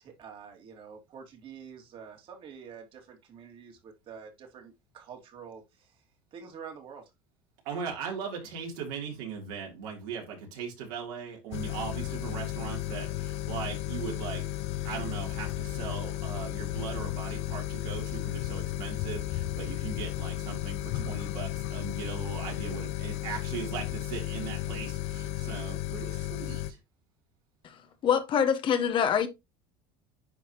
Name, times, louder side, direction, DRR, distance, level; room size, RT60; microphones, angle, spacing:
voice 1, 0.0-7.1, right 6 dB, 50° right, 2.6 m, -47 dB
voice 2, 7.7-14.6 14.8-26.8, right 6 dB, 75° right, 3.4 m, -39 dB
sound 1, 11.5-26.7, left 14 dB, 65° left, 0.7 m, -34 dB
voice 3, 28.0-29.3, left 8 dB, 45° left, 1.2 m, -25 dB
10.0 x 4.1 x 3.1 m
supercardioid pair, 90°, 12 cm